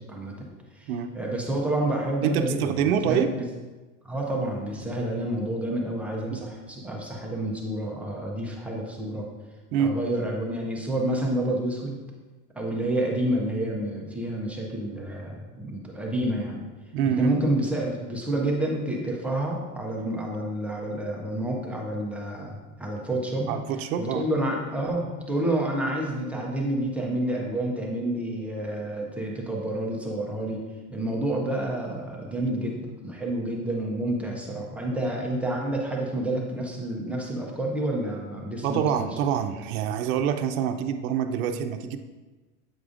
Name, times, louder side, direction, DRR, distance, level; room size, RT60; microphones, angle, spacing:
voice 1, 0.1-0.5 0.7-3.4 4.0-9.3 9.8-12.0 12.5-16.6 17.0-23.5 24.0-30.6 30.9-39.0, right 1 dB, 5° right, -3 dB, 0.4 m, -29 dB
voice 2, 2.2-3.3 6.3-6.4 9.7-10.0 16.9-17.4 23.5-24.3 38.6-42.0, right 8 dB, 75° right, 7 dB, 0.6 m, -26 dB
7.9 x 4.8 x 2.5 m, 1.2 s
supercardioid pair, 145°, 42 cm